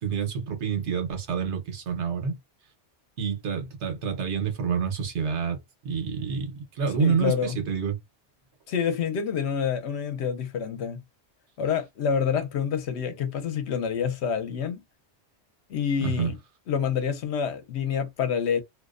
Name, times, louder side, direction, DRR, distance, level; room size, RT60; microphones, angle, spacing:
voice 1, 0.0-2.4 3.2-7.9 16.0-16.3, right 6 dB, 75° right, 1.1 m, -28 dB
voice 2, 6.9-7.6 8.7-11.0 11.6-14.8 15.7-16.3 16.7-18.6, left 7 dB, 75° left, 0.9 m, -27 dB
2.5 x 2.0 x 2.4 m
omnidirectional pair, 1.2 m